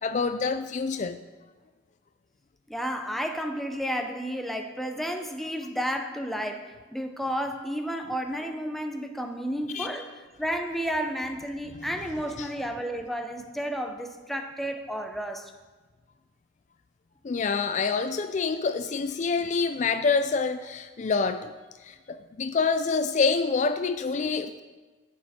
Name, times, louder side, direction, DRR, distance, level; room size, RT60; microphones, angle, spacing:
voice 1, 0.0-1.2 9.7-9.9 12.4-12.5 17.2-21.5 21.8-24.6, left 4 dB, 40° left, 10 dB, 0.4 m, -27 dB
voice 2, 2.7-10.1 10.4-15.5, equal, ahead, 4 dB, 0.7 m, -32 dB
16.0 x 6.5 x 4.3 m, 1.3 s
head